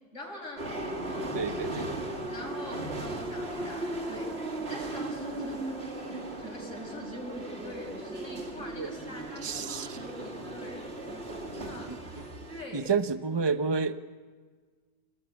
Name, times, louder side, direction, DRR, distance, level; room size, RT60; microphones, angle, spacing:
voice 1, 0.1-0.7 1.0-1.4 2.3-4.4 4.7-5.8 6.1-11.0 11.5-12.0 12.5-12.9, left 1 dB, 55° left, 0 dB, 6.9 m, -44 dB
sound 1, 0.6-12.6, right 1 dB, 45° right, 2.8 m, -37 dB
voice 2, 1.3-1.9 8.8-8.9 9.4-10.0 11.9-12.0 12.7-13.9, right 5 dB, 20° right, 10 dB, 0.9 m, -29 dB
sound 2, 4.1-12.1, equal, 75° left, 6.0 m, -52 dB
29.5 x 19.0 x 9.9 m, 1.5 s
omnidirectional pair, 1.5 m